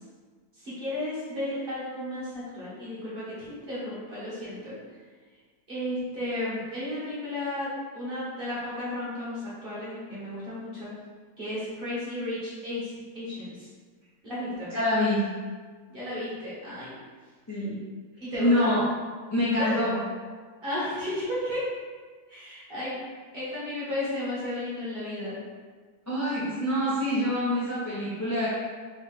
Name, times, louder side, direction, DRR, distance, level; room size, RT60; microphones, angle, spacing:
voice 1, 0.6-4.7 5.7-10.9 11.4-13.7 14.2-14.7 15.9-17.0 18.2-18.7 19.6-19.8 20.6-21.7 22.3-23.0 23.3-25.4, left 1 dB, 35° right, -9 dB, 1.5 m, -33 dB
voice 2, 14.7-15.2 17.5-17.7 18.4-18.8 19.3-20.0 26.1-28.5, left 1 dB, 15° left, -10 dB, 0.6 m, -25 dB
4.4 x 3.2 x 3.4 m, 1.5 s
omnidirectional pair, 1.8 m